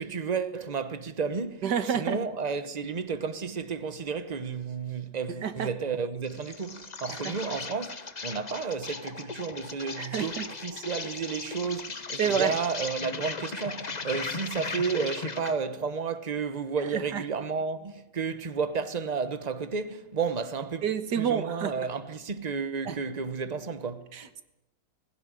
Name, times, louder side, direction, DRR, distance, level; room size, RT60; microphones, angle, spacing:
voice 1, 0.0-20.9 21.1-24.1, right 5 dB, 25° right, 1.0 m, -32 dB
voice 2, 1.6-2.2 5.4-5.7 7.1-7.3 10.0-10.4 12.2-12.6 16.9-17.2 20.8-21.7 22.9-23.0 24.1-24.4, right 8 dB, 70° right, 1.9 m, -29 dB
Insect, 6.2-15.6, left 4 dB, 30° left, 1.0 m, -37 dB
17.0 x 16.5 x 9.9 m
omnidirectional pair, 1.9 m